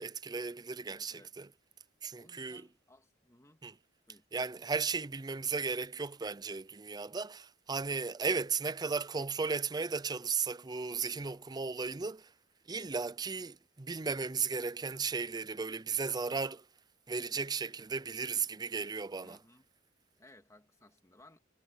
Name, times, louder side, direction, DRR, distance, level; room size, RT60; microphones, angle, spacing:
voice 1, 0.0-1.5 2.0-2.7 3.6-3.7 4.3-12.3 12.7-16.6 17.1-19.4, right 4 dB, 20° right, 0.5 m, -35 dB
voice 2, 0.8-1.3 2.0-3.6 4.1-4.2 19.2-19.7 20.2-21.4, left 1 dB, 20° left, 2.4 m, -61 dB
head